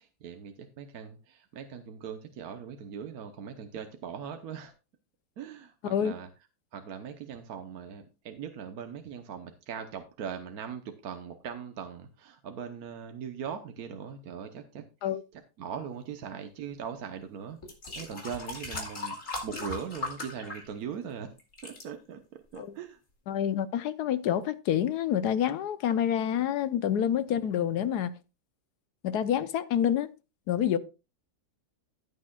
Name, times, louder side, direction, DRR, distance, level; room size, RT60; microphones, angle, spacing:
voice 1, 0.0-4.7 5.4-6.3 6.7-14.8 15.3-17.6 18.0-21.3 21.6-23.0, right 7 dB, 65° right, 1.3 m, -40 dB
voice 2, 5.8-6.1 15.0-15.2 22.6-22.7 23.3-28.1 29.0-30.1 30.5-30.8, left 9 dB, 70° left, 1.3 m, -27 dB
sound 1, 17.0-17.1 17.6-21.1 21.4-21.8 22.5-22.6, left 3 dB, 45° left, 2.8 m, -38 dB
14.5 x 8.7 x 2.3 m
omnidirectional pair, 1.8 m